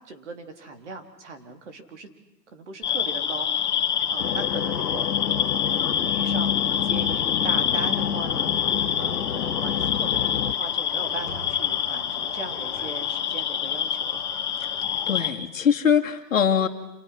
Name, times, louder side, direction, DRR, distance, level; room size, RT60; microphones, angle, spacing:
voice 1, 0.1-2.1 2.5-3.5 4.1-8.5 9.0-14.2, right 3 dB, 45° right, 6 dB, 3.8 m, -39 dB
sound 1, 2.8-15.3, left 9 dB, 25° left, 2.3 m, -26 dB
sound 2, 4.2-10.5, left 8 dB, 80° left, 1.0 m, -29 dB
sound 3, 7.9-12.9, left 2 dB, 5° left, 3.6 m, -44 dB
voice 2, 15.1-16.7, left 8 dB, 50° left, 3 dB, 2.5 m, -22 dB
29.5 x 28.5 x 5.9 m, 0.95 s
hypercardioid pair, 170°, 50 cm